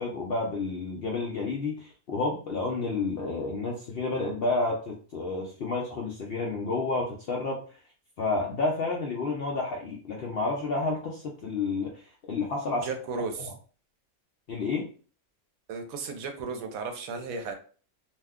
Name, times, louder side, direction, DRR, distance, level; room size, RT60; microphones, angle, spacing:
voice 1, 0.0-7.6 8.2-12.9 13.4-13.5 14.5-14.9, left 3 dB, 60° left, -1 dB, 0.6 m, -30 dB
voice 2, 12.8-13.5 15.7-17.5, right 4 dB, 75° right, 5 dB, 1.0 m, -34 dB
2.7 x 2.2 x 3.5 m, 0.40 s
omnidirectional pair, 1.5 m